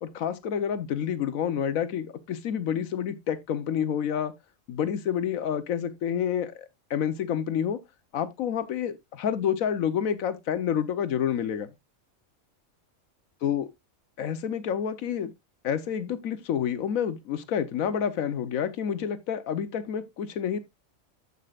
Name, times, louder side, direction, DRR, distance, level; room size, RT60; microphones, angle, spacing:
voice 1, 0.0-4.3 4.7-6.5 6.9-7.8 8.1-11.7 13.4-13.7 14.2-15.3 15.6-20.6, left 8 dB, 90° left, 1.3 m, -28 dB
14.0 x 5.5 x 2.4 m
omnidirectional pair, 1.4 m